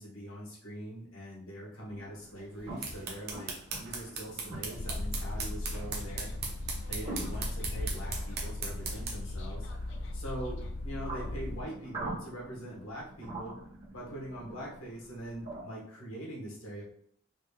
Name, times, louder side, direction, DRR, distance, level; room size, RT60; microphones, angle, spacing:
voice 1, 0.0-3.5 3.8-6.3 6.9-9.7 10.1-10.6 10.8-13.6 13.9-16.8, right 1 dB, 75° left, -3 dB, 1.3 m, -42 dB
sound 1, 1.8-15.7, right 2 dB, 30° right, 1.5 m, -46 dB
sound 2, 2.5-9.3, right 4 dB, 50° right, 0.7 m, -39 dB
sound 3, 4.7-11.6, left 2 dB, 60° left, 0.4 m, -37 dB
4.0 x 3.3 x 2.3 m, 0.65 s
head